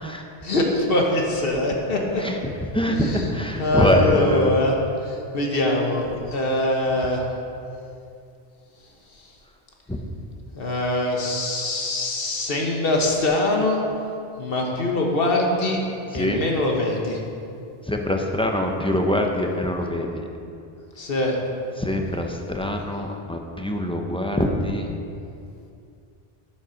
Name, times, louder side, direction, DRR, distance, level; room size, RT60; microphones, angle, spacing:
voice 1, 0.4-2.2 2.9-3.3 3.6-4.7 5.0-7.2 10.6-13.8 14.4-15.8 16.1-17.2 21.0-21.3, left 2 dB, 65° left, 0 dB, 1.5 m, -23 dB
voice 2, 2.2-4.6 9.9-10.0 16.1-16.4 17.9-20.3 21.8-24.9, left 1 dB, 5° left, 2 dB, 0.6 m, -24 dB
9.1 x 7.2 x 5.2 m, 2.5 s
omnidirectional pair, 1.1 m